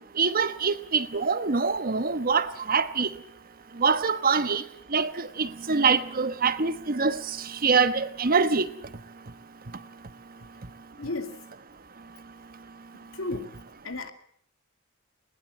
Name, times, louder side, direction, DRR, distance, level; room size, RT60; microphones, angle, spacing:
voice 1, 0.2-3.1 3.8-4.6 4.9-7.2 7.6-8.7, right 5 dB, 45° right, 1.1 m, -24 dB
voice 2, 11.0-11.4 13.1-13.6 13.8-14.1, left 2 dB, 80° left, 2.4 m, -33 dB
20.0 x 19.5 x 7.5 m
head